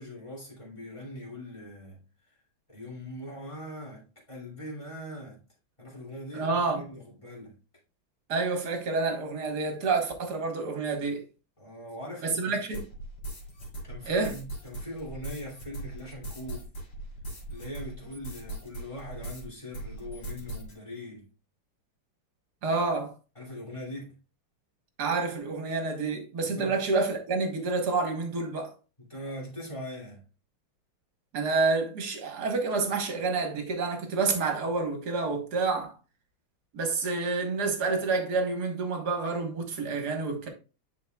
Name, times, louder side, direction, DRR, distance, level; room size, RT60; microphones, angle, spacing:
voice 1, 0.0-2.0 2.7-5.4 5.8-7.5 11.6-12.6 13.8-16.7 17.5-21.3 23.3-24.2 26.4-26.8 29.0-30.2, left 1 dB, 15° left, 2.7 m, -41 dB
voice 2, 6.3-6.8 8.3-11.2 12.2-12.8 14.1-14.3 22.6-23.1 25.0-28.7 31.3-35.9 36.7-40.5, right 4 dB, 55° right, 1.7 m, -28 dB
sound 1, 12.7-19.5 19.7-20.7, right 2 dB, 50° left, 3.2 m, -40 dB
10.5 x 4.4 x 2.3 m
omnidirectional pair, 2.3 m